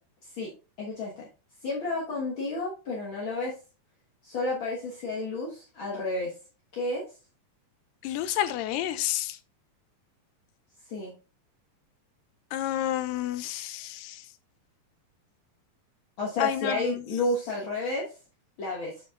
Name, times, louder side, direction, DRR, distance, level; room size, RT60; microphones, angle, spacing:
voice 1, 0.8-1.3 1.6-3.5 4.2-6.3 6.7-7.1 10.9-11.1 16.2-18.1 18.6-19.0, left 2 dB, 55° left, 1.4 m, -31 dB
voice 2, 8.0-9.4 12.5-14.3 16.4-17.0, left 12 dB, 80° left, 2.2 m, -30 dB
11.5 x 5.1 x 2.4 m
omnidirectional pair, 4.1 m